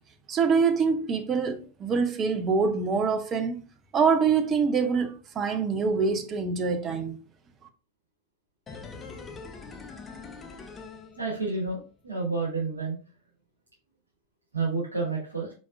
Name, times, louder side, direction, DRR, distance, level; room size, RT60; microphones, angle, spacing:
voice 1, 0.3-3.6 3.9-7.2, right 5 dB, 25° right, 0.7 m, -25 dB
sound 1, 8.7-11.8 12.1-12.2, left 4 dB, 20° left, 0.6 m, -43 dB
voice 2, 11.2-13.0 14.5-15.5, right 3 dB, 80° right, 1.5 m, -30 dB
4.4 x 4.1 x 2.4 m
figure-of-eight pair, 90°, 0 cm